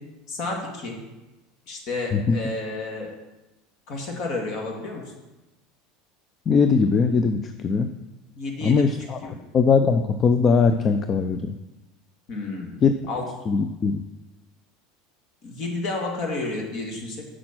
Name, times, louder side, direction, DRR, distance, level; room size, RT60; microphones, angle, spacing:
voice 1, 0.3-1.0 1.7-3.1 3.9-5.0 8.4-8.9 9.2-9.4 12.3-13.3 15.4-17.2, left 2 dB, 55° left, 1 dB, 2.2 m, -31 dB
voice 2, 6.5-7.9 8.6-9.2 9.5-11.5 12.8-12.9 13.5-14.0, left 5 dB, 35° left, 9 dB, 0.5 m, -20 dB
6.2 x 6.0 x 6.1 m, 1.1 s
hypercardioid pair, 80°, 0 cm